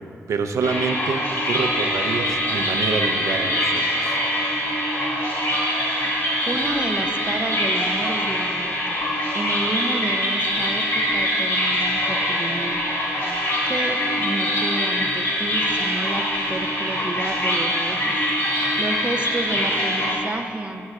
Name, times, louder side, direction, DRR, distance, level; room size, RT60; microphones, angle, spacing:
voice 1, 0.3-4.2, right 5 dB, 70° right, 6 dB, 0.6 m, -27 dB
sound 1, 0.6-20.2, equal, 50° left, 2.1 m, -23 dB
voice 2, 6.4-9.0 9.3-12.8 13.7-18.2 18.5-20.8, right 2 dB, 20° right, 4 dB, 0.5 m, -30 dB
16.0 x 9.0 x 2.4 m, 2.7 s
wide cardioid pair, 130°, 5 cm